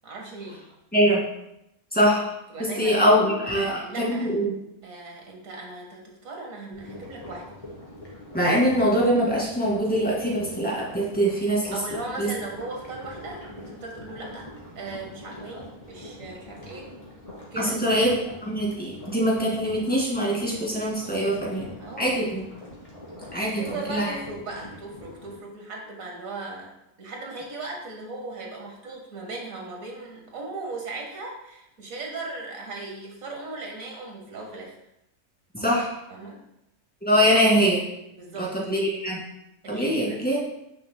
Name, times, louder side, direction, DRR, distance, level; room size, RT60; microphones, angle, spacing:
voice 1, 0.0-0.6 2.5-4.4 4.8-7.4 11.7-16.9 17.5-18.0 21.0-22.3 23.4-34.8 36.1-36.4 38.2-38.5 39.6-40.2, right 3 dB, 60° right, 0 dB, 1.9 m, -38 dB
voice 2, 0.9-1.3 1.9-2.3 2.6-4.5 8.3-11.8 12.2-12.3 17.6-21.7 22.0-22.4 23.3-24.1 35.5-35.9 37.0-37.8 38.4-39.2 39.7-40.4, equal, 5° left, -4 dB, 2.0 m, -23 dB
sound 1, 6.7-25.4, left 1 dB, 20° left, 2.5 m, -43 dB
10.0 x 6.5 x 2.2 m, 0.84 s
omnidirectional pair, 1.6 m